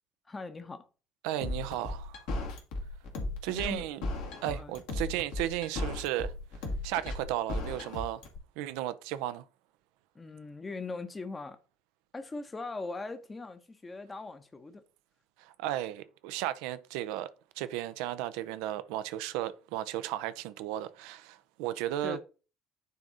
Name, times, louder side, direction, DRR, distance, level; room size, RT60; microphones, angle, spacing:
voice 1, 0.3-0.9 3.5-3.8 4.5-4.7 10.1-11.6 12.1-14.8 22.0-22.2, left 3 dB, 25° left, 0.9 m, -40 dB
voice 2, 1.2-2.2 3.4-4.0 4.4-6.3 6.8-8.2 8.6-9.4 15.4-17.3 17.6-22.2, right 13 dB, 65° right, 0.5 m, -34 dB
sound 1, 1.4-8.4, left 2 dB, 65° left, 1.7 m, -35 dB
9.4 x 3.6 x 4.0 m
figure-of-eight pair, 55°, 0 cm